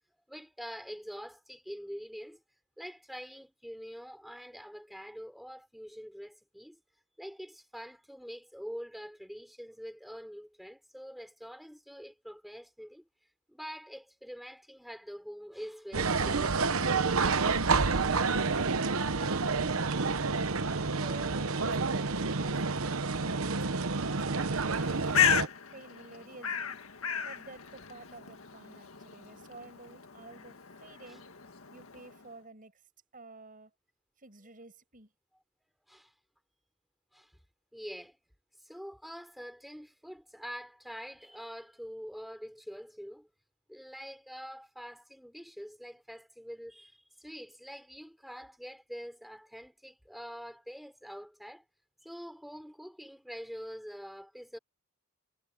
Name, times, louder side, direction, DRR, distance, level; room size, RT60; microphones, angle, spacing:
voice 1, 0.1-2.4 2.8-6.8 7.2-13.0 13.5-17.1 17.9-18.3 20.3-20.5 31.1-31.2 35.9-36.1 37.1-37.3 37.7-38.2 38.6-43.3 43.7-51.6 52.0-54.6, equal, ahead, 5.7 m, -45 dB
sound 1, 15.9-25.5, right 4 dB, 75° right, 1.1 m, -29 dB
voice 2, 18.4-20.0 20.5-23.6 24.2-26.8 27.2-31.3 31.7-32.8 33.1-33.7 34.2-35.1, right 3 dB, 40° right, 7.0 m, -50 dB
Bird, 24.7-32.3, left 8 dB, 75° left, 1.9 m, -34 dB
head